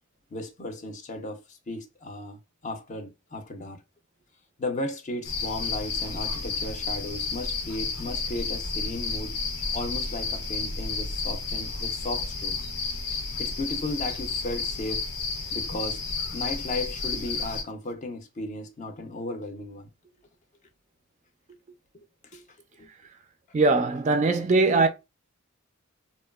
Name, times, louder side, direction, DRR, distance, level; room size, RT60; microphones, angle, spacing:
voice 1, 0.3-3.8 4.6-9.4 9.7-12.7 13.4-15.0 15.5-16.0 16.3-19.9 21.9-22.1 22.3-22.4 22.8-22.9, left 2 dB, 35° left, 0.5 m, -35 dB
sound 1, 5.2-17.6, left 4 dB, 90° left, 0.6 m, -31 dB
voice 2, 23.5-24.9, right 3 dB, 35° right, 0.3 m, -21 dB
2.8 x 2.2 x 2.2 m
head